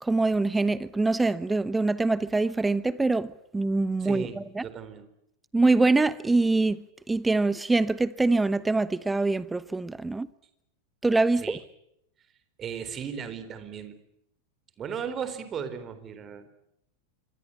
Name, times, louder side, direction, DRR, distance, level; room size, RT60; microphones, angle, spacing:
voice 1, 0.0-4.2 4.6-4.7 5.5-6.8 7.1-10.3 11.0-11.6, right 3 dB, 10° right, 1.0 m, -24 dB
voice 2, 4.0-5.1 11.4-11.6 12.6-14.0 14.8-16.5, right 7 dB, 25° right, 4.0 m, -36 dB
26.5 x 24.5 x 8.6 m
figure-of-eight pair, 90°, 0 cm